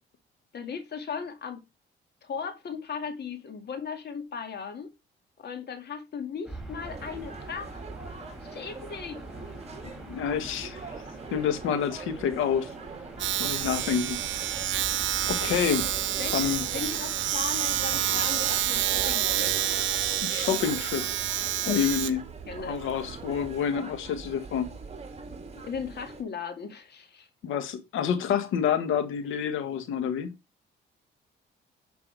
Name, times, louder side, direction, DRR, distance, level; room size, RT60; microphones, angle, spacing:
voice 1, 0.5-1.6 2.2-4.9 5.4-7.8 8.4-9.2 16.0-16.5 16.7-19.5 22.5-22.8 25.5-27.3, left 6 dB, 55° left, 2.3 m, -37 dB
Gull seagull / Ocean, 6.4-19.8, right 1 dB, ahead, 4.0 m, -45 dB
sound 1, 6.8-26.2, right 4 dB, 30° right, 2.4 m, -43 dB
voice 2, 10.1-10.9 11.3-12.7 13.4-14.2 15.3-15.9 16.3-16.7 20.2-21.2 21.7-22.2 22.6-24.7 27.4-30.3, left 8 dB, 85° left, 1.8 m, -28 dB
Domestic sounds home sounds, 13.2-23.6, right 12 dB, 70° right, 0.9 m, -28 dB
9.8 x 6.1 x 3.4 m
cardioid pair, 90°, 20 cm